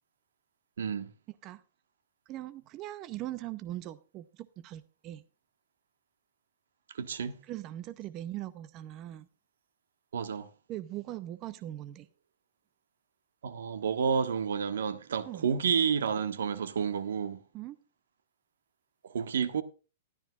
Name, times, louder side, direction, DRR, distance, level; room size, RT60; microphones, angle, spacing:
voice 1, 0.8-1.1 6.9-7.4 10.1-10.5 13.4-17.4 19.0-19.6, right 6 dB, 85° right, 1.4 m, -30 dB
voice 2, 2.3-5.2 7.5-9.3 10.7-12.1 15.2-15.5 17.5-17.8, right 14 dB, 25° right, 0.6 m, -40 dB
13.5 x 12.0 x 2.4 m
hypercardioid pair, 170°, 0 cm